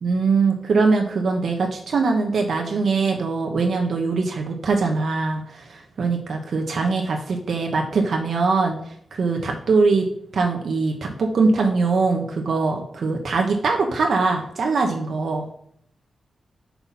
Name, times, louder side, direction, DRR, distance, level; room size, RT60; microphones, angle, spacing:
voice 1, 0.0-10.1 10.3-15.5, right 4 dB, 70° right, 2 dB, 1.0 m, -22 dB
5.7 x 5.7 x 4.2 m, 0.64 s
cardioid pair, 60°, 0 cm